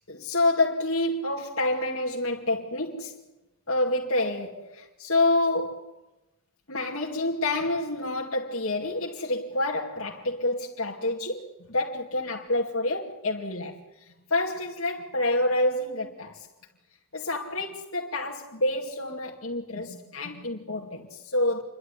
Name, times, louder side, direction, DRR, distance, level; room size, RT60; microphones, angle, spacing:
voice 1, 0.1-3.2 3.7-5.9 6.7-16.5 17.1-21.6, left 2 dB, 65° left, 2.5 m, -28 dB
28.5 x 12.5 x 9.9 m
head